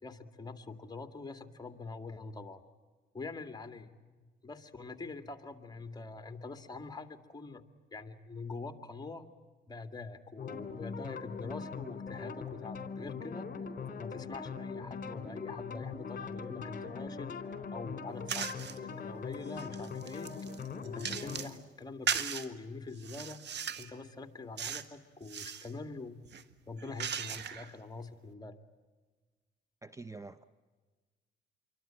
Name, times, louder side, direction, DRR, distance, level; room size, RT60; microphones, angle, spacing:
voice 1, 0.0-2.6 3.1-3.9 4.4-7.6 7.9-9.2 9.7-13.5 14.0-17.3 17.7-20.3 20.6-23.4 23.8-26.2 26.7-28.6, left 3 dB, 20° left, 2.4 m, -44 dB
sound 1, 10.4-21.5, left 5 dB, 45° left, 3.6 m, -41 dB
sound 2, 18.3-18.8 19.3-21.6 22.1-22.5 23.0-23.9 24.6-24.9 25.2-25.7 26.3-27.7, right 8 dB, 60° right, 1.6 m, -37 dB
voice 2, 29.8-30.4, right 3 dB, 15° right, 0.8 m, -46 dB
27.5 x 24.0 x 9.0 m
cardioid pair, 90°, 20 cm